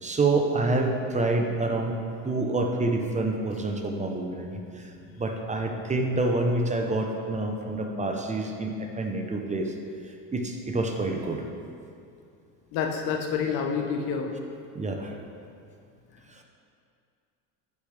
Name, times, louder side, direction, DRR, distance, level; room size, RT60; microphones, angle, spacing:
voice 1, 0.0-4.9 5.2-9.7 10.3-11.4 14.7-15.2 16.3-16.4, right 2 dB, 20° right, 3 dB, 0.8 m, -27 dB
voice 2, 12.7-14.3, left 6 dB, 70° left, 3 dB, 1.0 m, -28 dB
12.0 x 5.0 x 3.4 m, 2.4 s
supercardioid pair, 100°, 39 cm